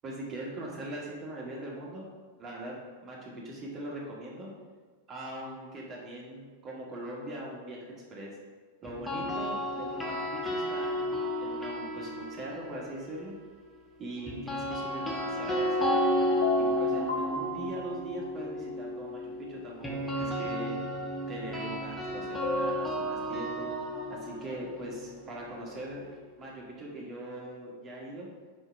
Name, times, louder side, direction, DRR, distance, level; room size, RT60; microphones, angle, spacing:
voice 1, 0.0-2.1 2.4-2.7 3.0-4.5 5.1-8.3 8.8-13.3 14.0-16.0 16.6-20.7 21.3-23.7 24.1-26.0 26.4-28.3, right 1 dB, 25° right, -3 dB, 1.7 m, -41 dB
sound 1, 8.8-13.0 14.2-26.1, equal, 10° left, 1.1 m, -33 dB
sound 2, 15.5-18.3 22.4-22.9, left 1 dB, 65° left, 0.8 m, -33 dB
5.4 x 4.5 x 4.5 m, 1.4 s
figure-of-eight pair, 90°, 0 cm